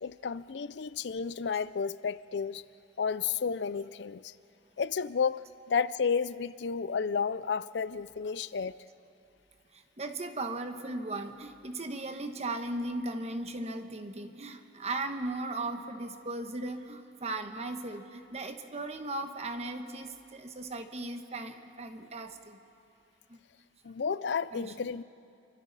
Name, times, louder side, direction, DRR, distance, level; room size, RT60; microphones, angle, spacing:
voice 1, 0.0-2.6 3.0-4.3 4.8-8.7 23.8-25.0, left 6 dB, 85° left, 17 dB, 0.5 m, -32 dB
voice 2, 9.7-22.6 23.3-23.4 24.5-24.9, right 2 dB, 40° right, 7 dB, 1.2 m, -37 dB
28.0 x 25.0 x 4.1 m, 2.5 s
head